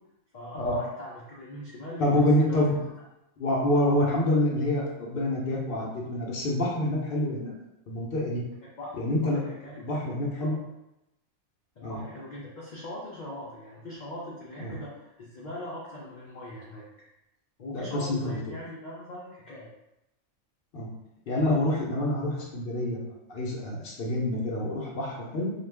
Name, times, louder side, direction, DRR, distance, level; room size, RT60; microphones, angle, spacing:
voice 1, 0.3-2.8 8.8-10.0 10.4-10.5 11.8-16.9 17.6-19.7, left 1 dB, 85° left, -6 dB, 0.4 m, -41 dB
voice 2, 2.0-2.7 3.4-7.5 7.9-8.4 8.9-9.4 9.8-10.5 11.8-12.0 14.6-14.7 17.7-18.4 20.7-20.9 21.3-23.0 23.3-25.5, left 1 dB, 55° left, -3 dB, 0.7 m, -27 dB
2.4 x 2.3 x 3.3 m, 0.92 s
omnidirectional pair, 1.4 m